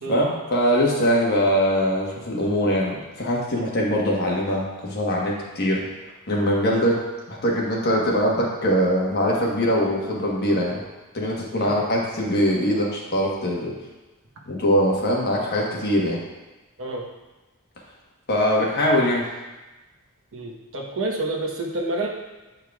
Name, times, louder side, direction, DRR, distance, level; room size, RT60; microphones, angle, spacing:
voice 1, 0.1-5.8 6.3-7.0 7.3-10.8 11.1-13.7 14.5-16.2 18.3-19.3, equal, 45° left, -3 dB, 1.2 m, -22 dB
voice 2, 20.3-22.1, right 2 dB, 60° right, -1 dB, 1.0 m, -29 dB
9.0 x 4.6 x 2.3 m, 1.1 s
head